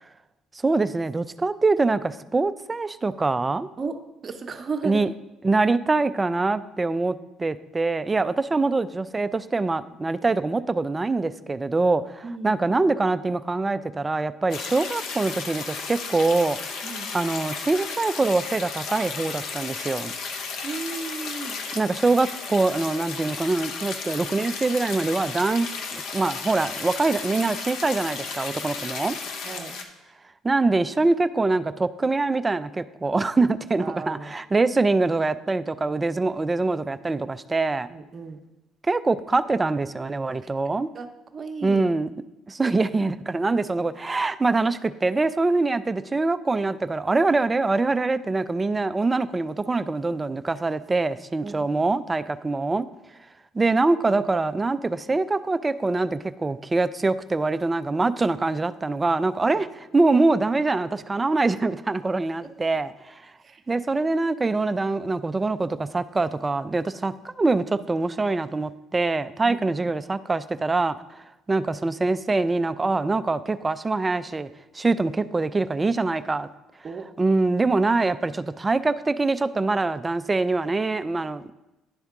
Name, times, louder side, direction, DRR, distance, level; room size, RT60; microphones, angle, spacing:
voice 1, 0.6-3.7 4.8-5.1 5.4-16.6 17.1-20.1 21.8-29.2 30.4-37.9 38.9-40.9 41.6-42.1 42.5-52.9 53.5-59.7 59.9-63.2 63.7-71.2 71.5-74.5 74.7-76.5 77.2-81.5, right 3 dB, 20° right, 13 dB, 0.3 m, -24 dB
voice 2, 4.2-5.0 12.2-12.5 16.8-17.1 20.6-21.6 29.4-29.7 33.8-34.3 37.9-38.4 40.4-40.5 40.9-41.1 41.3-41.8 51.4-51.7 59.5-59.6 63.4-63.8 69.4-69.7 76.8-77.1, right 4 dB, 40° right, 5 dB, 0.7 m, -34 dB
sound 1, 14.5-29.8, left 5 dB, 70° left, 0.7 m, -34 dB
10.5 x 3.5 x 3.5 m, 0.96 s
supercardioid pair, 75°, 0 cm